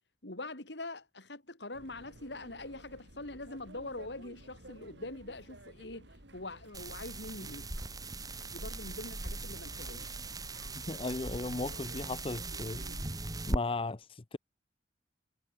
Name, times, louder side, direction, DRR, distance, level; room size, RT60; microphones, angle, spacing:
voice 1, 0.2-7.7 8.5-10.2, left 2 dB, 75° left, 4.0 m, -44 dB
sound 1, 1.7-13.1, right 1 dB, 90° right, 6.2 m, -54 dB
sound 2, 6.7-13.6, right 2 dB, 20° right, 2.3 m, -39 dB
voice 2, 10.9-12.8 13.5-14.4, left 3 dB, 30° left, 0.7 m, -36 dB
head